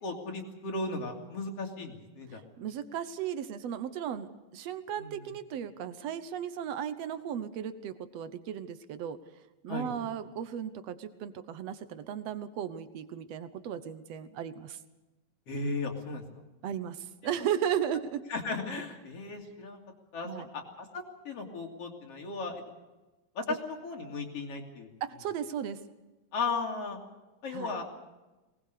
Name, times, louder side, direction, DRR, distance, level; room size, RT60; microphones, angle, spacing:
voice 1, 0.0-2.4 5.0-5.2 9.7-9.9 15.5-16.2 18.3-19.8 20.1-22.6 23.4-24.9 26.3-27.0 27.4-27.8, left 3 dB, 45° left, 2 dB, 3.6 m, -36 dB
voice 2, 2.3-9.2 9.6-14.8 16.6-18.2 20.2-20.5 25.0-25.8 27.5-27.7, right 9 dB, 65° right, 12 dB, 1.7 m, -35 dB
22.5 x 20.0 x 6.7 m, 1.1 s
omnidirectional pair, 4.0 m